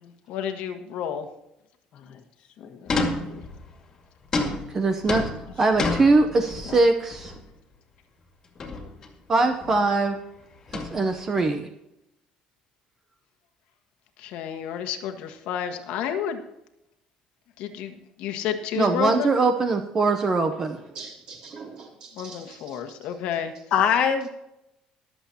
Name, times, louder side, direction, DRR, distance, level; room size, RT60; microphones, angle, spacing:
voice 1, 0.3-1.3 14.2-16.4 17.6-17.9 18.2-19.3 22.2-23.5, left 8 dB, 65° left, 5 dB, 1.6 m, -30 dB
voice 2, 2.6-3.4 6.7-6.8 23.7-24.3, left 7 dB, 50° left, 5 dB, 1.6 m, -26 dB
sound 1, 2.9-3.8 4.3-6.8 7.1-7.4 8.6-9.1 9.4-9.8 10.7-11.4, left 3 dB, 25° left, 2.2 m, -30 dB
voice 3, 4.7-5.3 5.6-7.3 9.3-10.2 10.9-11.7 18.7-20.8, right 3 dB, 20° right, 6 dB, 0.8 m, -22 dB
voice 4, 20.8-23.6, right 4 dB, 40° right, 0 dB, 3.2 m, -44 dB
23.5 x 8.0 x 2.9 m, 0.84 s
cardioid pair, 180°, 2 cm